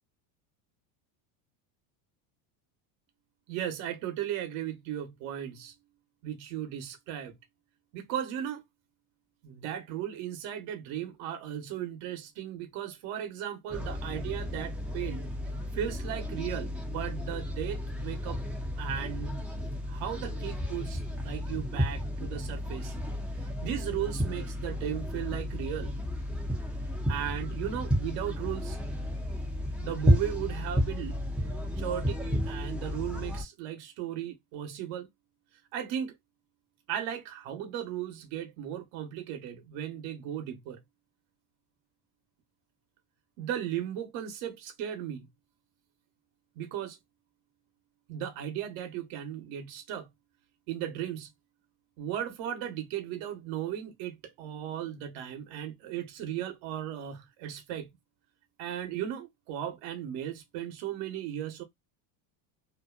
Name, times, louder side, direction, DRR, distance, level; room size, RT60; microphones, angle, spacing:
voice 1, 3.5-5.7 6.2-7.3 7.9-8.6 9.4-15.3 15.7-18.4 18.8-19.4 19.9-22.9 23.4-25.9 27.1-28.8 29.8-31.2 31.8-32.2 32.5-35.1 35.7-36.1 36.9-40.8 43.4-45.3 46.6-47.0 48.1-50.1 50.7-51.3 52.0-57.9 58.6-61.6, right 10 dB, 65° right, 1.0 m, -36 dB
sound 1, 13.7-33.4, equal, ahead, 0.4 m, -32 dB
2.7 x 2.2 x 2.2 m
cardioid pair, 130°, 49 cm